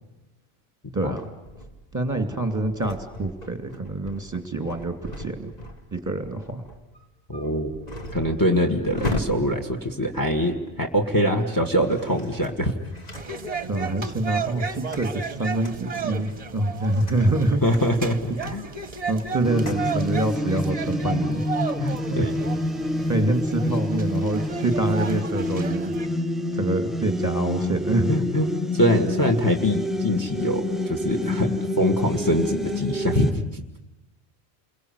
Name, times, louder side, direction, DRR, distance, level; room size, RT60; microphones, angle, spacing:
voice 1, 0.9-1.2 1.9-5.5 5.9-6.6 13.7-17.6 19.1-21.4 21.8-22.2 23.1-25.9 26.5-28.1, right 2 dB, 15° right, 6 dB, 2.5 m, -26 dB
sound 1, 1.1-10.9 11.7-13.9 14.3-20.0, left 1 dB, 40° left, 2.1 m, -38 dB
voice 2, 7.3-7.7 8.1-12.8 17.6-18.6 21.8-22.3 28.1-33.6, equal, 20° left, 6 dB, 1.8 m, -24 dB
sound 2, 13.1-26.1, right 5 dB, 35° right, 1.1 m, -34 dB
sound 3, 19.4-33.3, left 1 dB, ahead, 0.7 m, -27 dB
29.0 x 22.5 x 8.2 m, 0.99 s
omnidirectional pair, 1.1 m